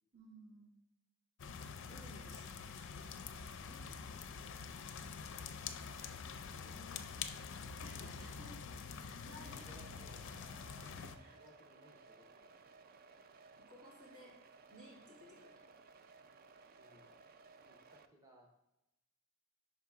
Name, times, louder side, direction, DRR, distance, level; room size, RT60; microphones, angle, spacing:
voice 1, 0.1-0.8 1.8-3.8 7.8-8.6 9.0-9.9 10.8-11.4 13.7-14.3 14.7-15.8, equal, 85° right, -5 dB, 2.3 m, -58 dB
sound 1, 1.4-11.2, left 6 dB, 55° left, 0.4 m, -46 dB
voice 2, 6.5-7.1 9.5-10.1 11.1-12.5 16.7-17.2 17.7-18.5, left 1 dB, 15° right, -1 dB, 0.8 m, -62 dB
sound 2, 9.4-18.0, right 4 dB, 45° right, 0.3 m, -60 dB
5.7 x 3.8 x 4.7 m, 0.91 s
head